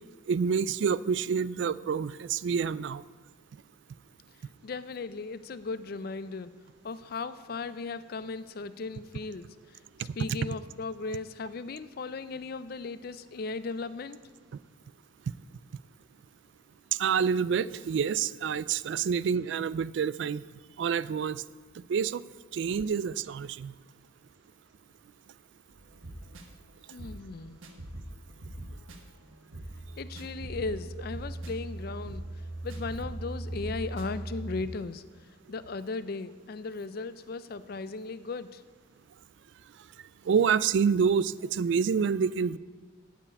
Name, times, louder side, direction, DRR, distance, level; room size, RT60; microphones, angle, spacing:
voice 1, 0.3-3.0 17.0-20.4 20.8-21.4 21.9-22.2 22.5-23.7 40.3-42.6, right 6 dB, 65° right, 18 dB, 0.3 m, -27 dB
voice 2, 4.6-6.5 6.8-14.2 26.9-27.6 30.0-32.2 32.6-35.0 35.5-38.6, left 3 dB, 50° left, 14 dB, 0.4 m, -37 dB
sound 1, 25.7-34.7, right 1 dB, 85° right, 1.3 m, -40 dB
8.9 x 7.0 x 8.3 m, 1.4 s
head